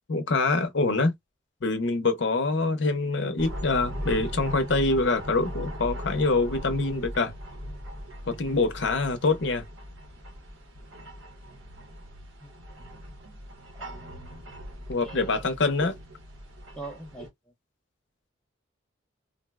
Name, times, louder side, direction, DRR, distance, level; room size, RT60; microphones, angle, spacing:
voice 1, 0.1-1.1 1.6-7.3 8.3-9.6 14.9-15.9, left 3 dB, 60° left, 0.6 m, -25 dB
sound 1, 3.4-17.3, equal, 80° right, 1.0 m, -39 dB
voice 2, 13.8-14.4 15.0-15.4 16.8-17.3, right 2 dB, 5° left, 0.5 m, -42 dB
3.7 x 2.0 x 2.3 m
head